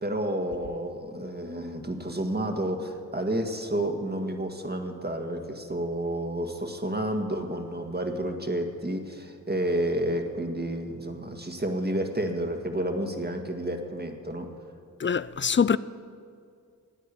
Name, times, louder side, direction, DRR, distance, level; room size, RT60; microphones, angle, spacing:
voice 1, 0.0-14.5, right 1 dB, 30° right, 1.8 m, -30 dB
voice 2, 15.0-15.8, left 6 dB, 35° left, 0.4 m, -23 dB
13.0 x 9.2 x 8.5 m
cardioid pair, 40°, 35 cm